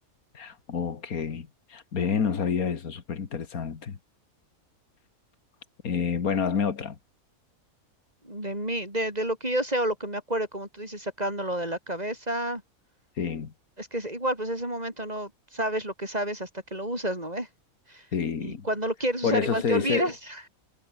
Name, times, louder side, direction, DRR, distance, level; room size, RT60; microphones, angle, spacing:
voice 1, 0.3-4.0 5.8-7.0 13.2-13.5 18.1-18.7 19.2-20.1, left 6 dB, 90° left, 2.2 m, -28 dB
voice 2, 8.2-12.6 13.8-17.5 17.9-18.1 18.4-20.4, right 1 dB, 25° right, 6.8 m, -30 dB
omnidirectional pair, 1.5 m